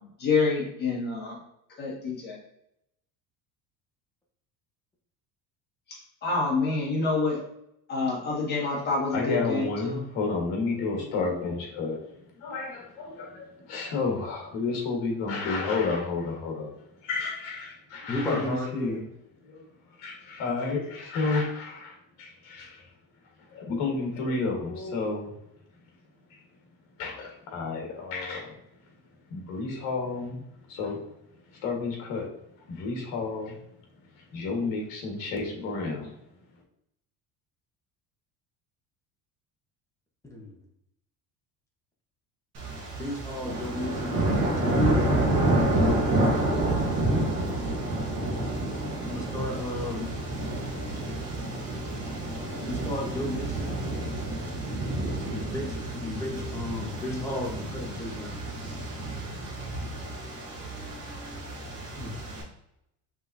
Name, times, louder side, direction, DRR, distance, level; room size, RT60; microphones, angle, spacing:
voice 1, 0.2-1.4 1.8-2.4 5.9-7.4 7.9-10.0, left 3 dB, 30° left, -5 dB, 1.6 m, -27 dB
voice 2, 9.1-12.0 12.4-16.7 17.0-19.0 19.4-19.6 20.0-22.8 23.5-25.3 26.3-26.4 27.0-28.5 29.3-30.4 30.7-31.0 31.6-32.3 32.7-33.6 34.3-36.1, left 3 dB, 60° left, 1 dB, 1.6 m, -31 dB
voice 3, 18.1-19.0 40.3-40.5 43.0-44.2 44.6-45.2 49.0-50.1 52.6-53.8 55.3-58.4 62.0-62.2, left 1 dB, 10° left, -2 dB, 0.8 m, -34 dB
sound 1, 42.5-62.4, right 1 dB, 45° right, 1.5 m, -29 dB
5.4 x 3.4 x 2.7 m, 0.80 s
cardioid pair, 165°, 36 cm